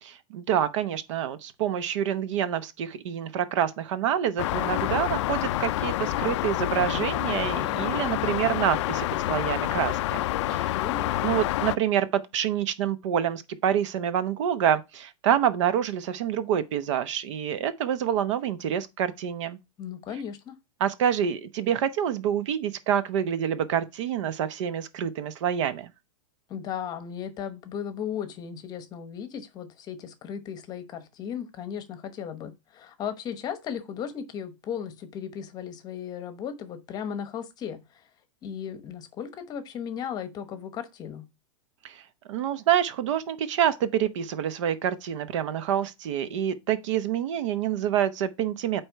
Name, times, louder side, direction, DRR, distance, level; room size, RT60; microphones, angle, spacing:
voice 1, 0.0-10.2 10.5-10.8 11.2-19.6 20.8-25.9 41.8-42.0 42.3-48.8, right 9 dB, 60° right, 0.8 m, -27 dB
sound 1, 4.4-11.8, left 15 dB, 55° left, 0.4 m, -28 dB
voice 2, 10.5-11.1 19.8-20.5 26.5-38.0 38.4-41.3, left 8 dB, 20° left, 0.9 m, -36 dB
8.7 x 3.3 x 4.5 m
supercardioid pair, 160°, 18 cm